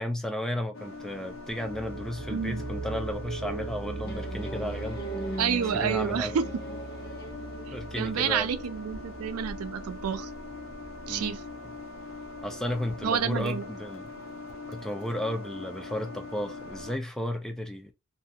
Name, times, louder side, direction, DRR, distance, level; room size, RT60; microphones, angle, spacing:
voice 1, 0.0-5.4 5.7-6.3 7.7-8.5 11.1-11.4 12.4-14.1 14.7-17.9, left 1 dB, 5° left, 0.3 m, -33 dB
sound 1, 0.7-17.0, left 3 dB, 65° left, 0.6 m, -42 dB
sound 2, 1.5-13.0, right 4 dB, 45° right, 0.8 m, -41 dB
voice 2, 2.3-2.6 5.4-6.5 7.7-10.3 11.1-11.4 13.0-13.6, right 7 dB, 90° right, 0.4 m, -29 dB
sound 3, 4.0-8.7, right 1 dB, 50° left, 0.9 m, -39 dB
2.6 x 2.3 x 2.7 m
head